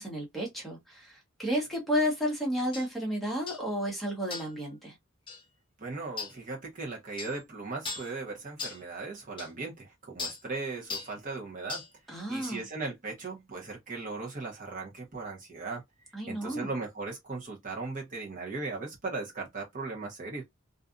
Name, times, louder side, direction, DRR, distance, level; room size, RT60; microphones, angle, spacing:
voice 1, 0.0-5.0 12.1-12.7 16.1-16.7, equal, ahead, 0.9 m, -32 dB
sound 1, 2.7-2.9 3.5-3.7 4.3-4.6 5.3-5.4 6.2-6.4 7.2-7.4 7.8-8.1 8.6-8.8 9.4-9.5 10.2-10.4 10.9-11.1 11.7-11.9 12.4-12.6, left 4 dB, 25° left, 0.8 m, -38 dB
voice 2, 5.8-11.8 12.1-15.8 16.3-20.4, right 3 dB, 40° right, 0.9 m, -38 dB
2.6 x 2.3 x 2.4 m
head